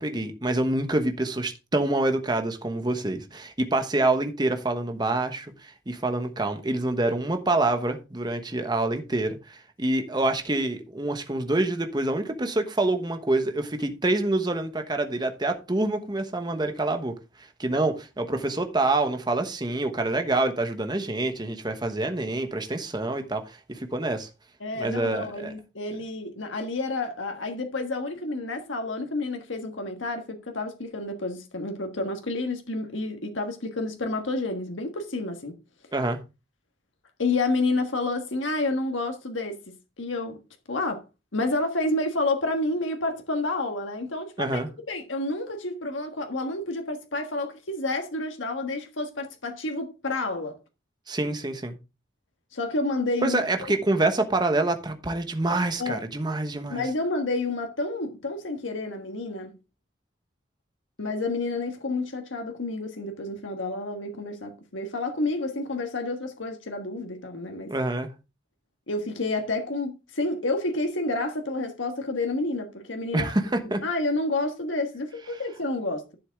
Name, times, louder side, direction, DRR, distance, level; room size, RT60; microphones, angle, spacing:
voice 1, 0.0-17.1 17.4-24.3 24.8-25.5 35.9-36.2 44.4-44.7 51.1-51.8 53.2-56.9 67.7-68.1 73.1-73.8, right 2 dB, 20° right, 1.1 m, -26 dB
voice 2, 24.6-35.6 37.2-40.4 40.7-41.0 41.3-44.6 44.9-50.6 52.5-53.4 55.8-56.0 56.7-59.5 61.0-67.7 68.9-73.3 73.8-76.2, left 2 dB, 85° left, 1.5 m, -29 dB
11.0 x 7.1 x 3.5 m
head